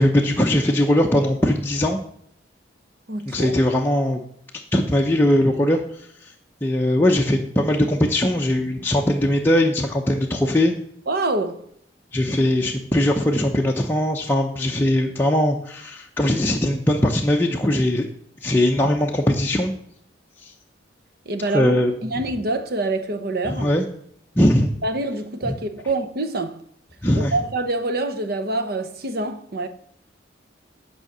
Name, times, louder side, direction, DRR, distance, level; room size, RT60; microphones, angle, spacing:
voice 1, 0.0-2.0 3.3-4.2 4.7-6.3 6.6-10.7 12.1-18.1 18.4-19.7 20.4-20.5 21.5-22.0 23.4-23.8 24.4-24.7 25.4-25.5 27.0-27.3, left 1 dB, 10° left, 0.7 m, -20 dB
voice 2, 3.1-3.5 11.1-11.6 21.3-21.8 22.0-23.7 24.8-26.6 27.2-29.7, right 2 dB, 55° right, 0.9 m, -26 dB
9.2 x 4.9 x 6.7 m
head